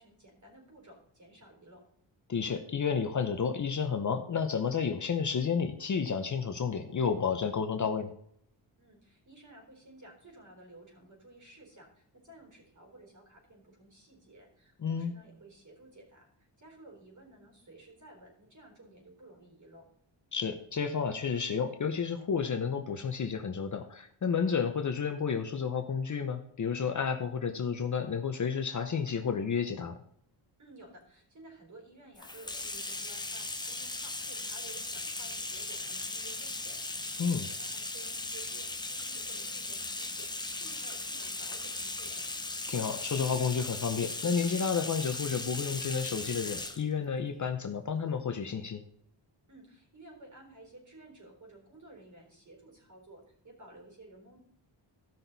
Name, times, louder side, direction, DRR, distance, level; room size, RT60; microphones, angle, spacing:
voice 1, 0.0-1.8 8.8-19.9 30.6-42.3 49.5-54.4, right 2 dB, 40° right, 1 dB, 4.0 m, -54 dB
voice 2, 2.3-8.1 14.8-15.1 20.3-29.9 37.2-37.5 42.7-48.8, left 6 dB, 40° left, 7 dB, 0.8 m, -31 dB
Bathtub (filling or washing), 32.2-46.8, left 2 dB, 10° left, 0.7 m, -38 dB
15.0 x 6.0 x 4.0 m, 0.67 s
wide cardioid pair, 145°, 46 cm